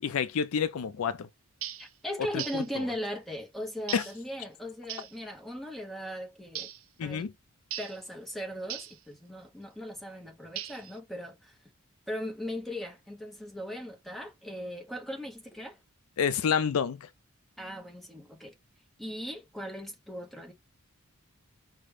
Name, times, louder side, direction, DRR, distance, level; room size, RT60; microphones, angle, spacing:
voice 1, 0.0-1.3 2.3-2.8 3.9-4.0 7.0-7.3 16.2-17.1, left 7 dB, 70° left, 0.4 m, -29 dB
sound 1, 1.6-1.9 2.4-2.7 3.9-4.2 4.9-5.2 6.5-6.8 7.7-8.0 8.7-9.0 10.6-11.0, right 11 dB, 60° right, 0.4 m, -38 dB
voice 2, 1.8-6.7 7.0-7.3 7.8-11.5 12.1-15.8 17.6-18.5 19.0-20.5, equal, ahead, 0.9 m, -38 dB
5.0 x 2.2 x 3.2 m
head